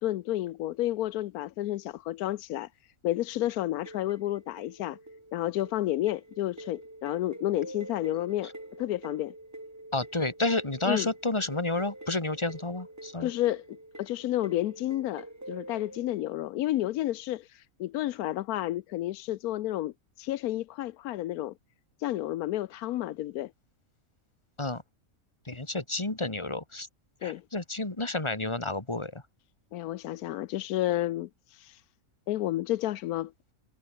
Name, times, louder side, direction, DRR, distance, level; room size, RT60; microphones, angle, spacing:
voice 1, 0.0-5.0 5.3-8.5 8.8-9.3 10.8-11.1 13.2-21.5 22.0-23.5 27.2-27.4 29.7-31.8 32.3-33.3, left 14 dB, 80° left, 1.1 m, -31 dB
sound 1, 3.9-16.2, right 1 dB, 10° right, 1.8 m, -46 dB
voice 2, 9.9-13.3 24.6-24.8 25.5-26.9 27.2-29.2, left 2 dB, 20° left, 2.5 m, -30 dB
omnidirectional pair, 1.5 m